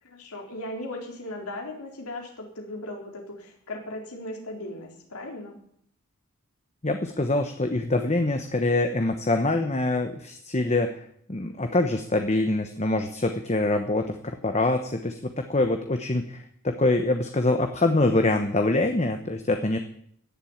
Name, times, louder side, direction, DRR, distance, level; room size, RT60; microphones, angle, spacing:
voice 1, 0.0-5.6, left 1 dB, 90° left, 1 dB, 4.0 m, -37 dB
voice 2, 6.8-11.0 11.3-19.8, left 2 dB, 30° left, 6 dB, 1.0 m, -25 dB
16.5 x 7.6 x 8.7 m, 0.66 s
head